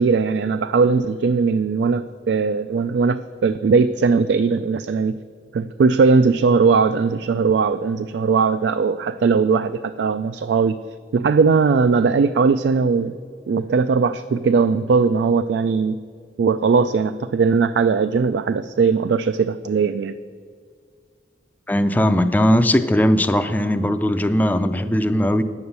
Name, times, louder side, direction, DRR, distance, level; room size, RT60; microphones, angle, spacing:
voice 1, 0.0-5.2 5.5-10.8 11.1-13.1 13.5-16.0 16.4-20.1, right 5 dB, 70° right, 12 dB, 0.3 m, -19 dB
voice 2, 21.7-25.4, equal, 10° left, 9 dB, 0.4 m, -18 dB
9.4 x 7.1 x 8.0 m, 2.1 s
head